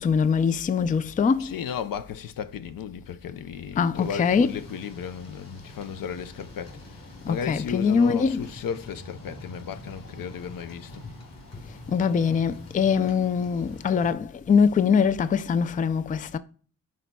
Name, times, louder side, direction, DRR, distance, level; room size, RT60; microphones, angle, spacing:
voice 1, 0.0-1.5 3.8-4.6 7.3-8.5 11.9-16.4, left 6 dB, 25° left, 0.3 m, -23 dB
voice 2, 1.4-7.0 7.2-11.0, left 7 dB, 75° left, 0.6 m, -35 dB
Thunder / Rain, 3.9-14.1, left 1 dB, 50° left, 2.7 m, -45 dB
10.5 x 4.1 x 2.3 m
cardioid pair, 75°, 34 cm